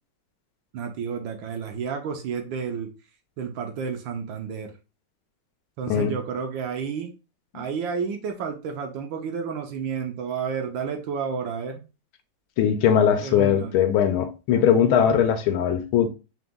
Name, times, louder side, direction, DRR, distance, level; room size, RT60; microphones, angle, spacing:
voice 1, 0.7-2.9 3.4-4.7 5.8-7.1 7.5-11.8 13.2-13.7, right 6 dB, 70° right, 1.3 m, -31 dB
voice 2, 12.6-16.1, left 8 dB, 75° left, 1.4 m, -20 dB
4.0 x 2.9 x 3.5 m
omnidirectional pair, 2.4 m